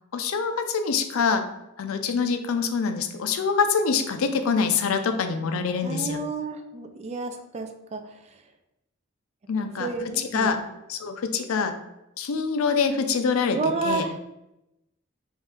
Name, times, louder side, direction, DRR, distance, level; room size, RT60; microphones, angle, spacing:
voice 1, 0.1-1.4 1.8-6.2 9.5-9.9 10.2-10.6 10.9-11.7 12.2-13.6 13.8-14.1, left 5 dB, 75° left, 7 dB, 0.4 m, -25 dB
voice 2, 5.8-8.1 9.6-10.6 13.5-14.2, right 3 dB, 30° right, 5 dB, 0.3 m, -31 dB
3.1 x 2.6 x 3.6 m, 0.89 s
head